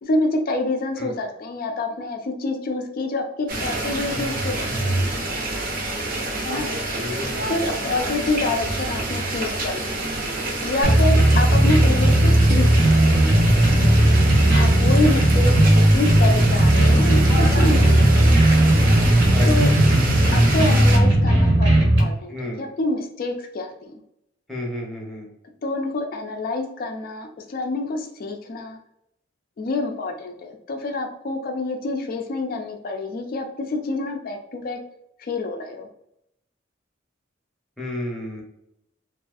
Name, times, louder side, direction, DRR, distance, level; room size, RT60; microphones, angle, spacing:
voice 1, 0.0-5.2 6.4-6.7 7.5-10.0 10.6-13.2 14.5-18.3 19.5-19.7 20.3-24.0 25.6-28.8 29.6-34.8 35.2-35.9, left 2 dB, 50° left, 4 dB, 0.3 m, -27 dB
sound 1, 3.5-21.0, right 2 dB, 45° right, 0.5 m, -27 dB
voice 2, 6.9-7.7 10.8-11.0 14.2-14.5 19.3-19.7 22.3-22.6 24.5-25.3 37.8-38.4, left 1 dB, ahead, -3 dB, 0.7 m, -32 dB
sound 2, 10.8-22.0, right 1 dB, 70° right, 0.8 m, -16 dB
2.5 x 2.4 x 2.3 m, 0.79 s
head